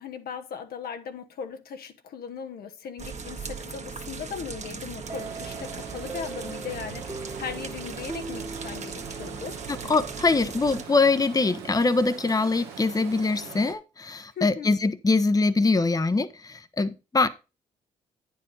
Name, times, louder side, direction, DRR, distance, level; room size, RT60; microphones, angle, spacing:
voice 1, 0.0-9.6 14.4-14.7, left 7 dB, 65° left, 1.1 m, -38 dB
sound 1, 3.0-10.8, right 5 dB, 40° right, 1.5 m, -39 dB
Stream, 5.0-13.7, right 7 dB, 80° right, 1.4 m, -42 dB
sound 2, 5.1-9.8, right 3 dB, 15° right, 0.9 m, -41 dB
voice 2, 9.7-17.3, left 3 dB, 20° left, 0.9 m, -23 dB
9.6 x 4.8 x 5.5 m
hypercardioid pair, 45°, 17 cm